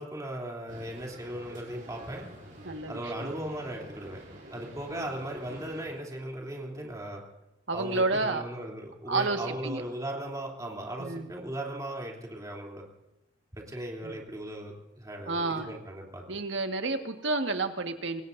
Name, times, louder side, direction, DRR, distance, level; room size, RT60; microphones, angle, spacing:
voice 1, 0.0-2.3 2.9-4.2 4.5-7.2 7.7-12.8 13.5-16.2, right 1 dB, 20° right, -1 dB, 3.2 m, -37 dB
sound 1, 0.7-5.9, right 1 dB, 50° right, 7.3 m, -48 dB
voice 2, 2.6-3.3 4.9-5.1 7.7-8.4 9.1-9.8 11.0-11.3 14.0-14.2 15.3-15.7 16.3-18.2, right 3 dB, 80° right, 6 dB, 1.7 m, -30 dB
25.5 x 18.0 x 2.7 m, 1.0 s
head